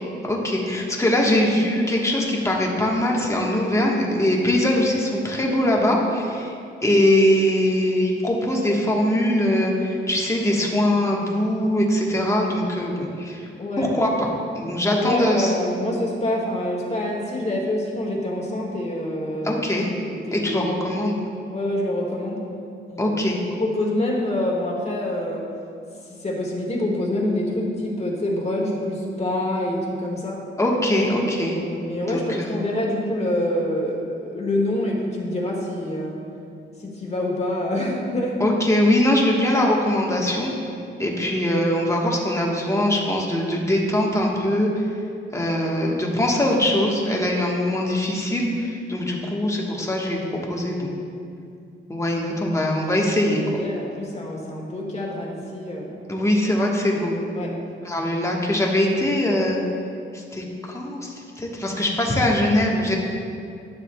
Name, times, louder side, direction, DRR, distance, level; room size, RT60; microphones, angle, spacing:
voice 1, 0.2-6.5 6.8-13.5 13.8-14.3 14.5-15.5 19.4-19.9 20.3-21.2 23.0-23.4 30.6-31.6 32.1-32.5 38.4-40.5 41.0-44.7 45.3-50.2 50.5-50.9 51.9-53.4 56.1-57.2 57.8-59.6 60.1-63.0, left 1 dB, 15° left, -2 dB, 1.2 m, -22 dB
voice 2, 13.6-14.0 14.9-19.7 20.1-20.7 21.0-21.1 21.5-22.5 22.9-23.2 23.6-25.5 26.2-30.4 31.5-36.2 36.8-38.4 53.6-56.0 57.3-57.6, left 1 dB, 30° left, -2 dB, 1.6 m, -26 dB
11.5 x 7.1 x 2.2 m, 2.5 s
cardioid pair, 90°, 21 cm